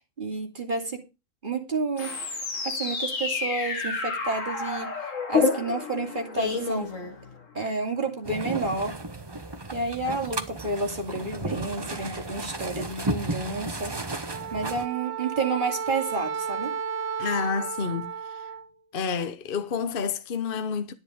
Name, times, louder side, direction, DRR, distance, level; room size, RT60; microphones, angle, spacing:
voice 1, 0.2-1.0 1.4-2.2 2.6-6.9 7.5-9.0 9.7-14.0 14.5-16.7, right 3 dB, 40° right, 2.8 m, -30 dB
sound 1, 2.0-7.6, left 4 dB, 75° left, 2.4 m, -29 dB
sound 2, 8.2-14.9, right 2 dB, 20° right, 1.0 m, -34 dB
Wind instrument woodwind instrument, 14.3-18.7, right 7 dB, 75° right, 1.2 m, -33 dB
voice 2, 17.2-18.5 18.9-20.9, left 6 dB, 45° left, 1.1 m, -29 dB
10.5 x 10.0 x 5.0 m
omnidirectional pair, 1.4 m